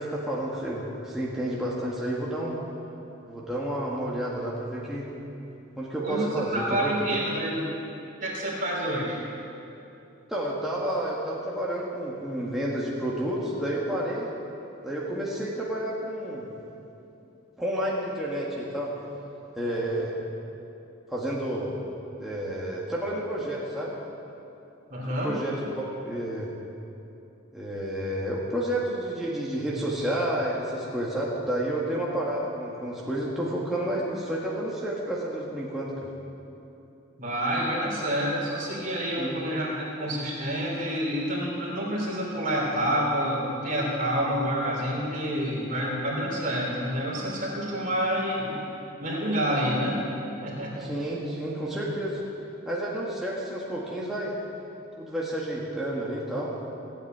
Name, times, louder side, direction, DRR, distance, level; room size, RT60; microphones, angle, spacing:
voice 1, 0.0-2.6 3.3-5.1 5.8-7.1 10.3-14.3 14.8-16.5 17.6-18.9 19.6-20.1 21.1-21.8 22.2-23.9 25.2-26.5 27.5-36.1 39.2-39.4 50.8-52.2 52.7-54.3 55.0-56.5, right 1 dB, ahead, -6 dB, 1.7 m, -30 dB
voice 2, 6.0-7.6 8.2-9.2 24.9-25.3 37.2-48.6 49.0-50.0 50.4-50.9, equal, 40° right, -4 dB, 3.3 m, -28 dB
16.5 x 8.4 x 9.3 m, 2.9 s
head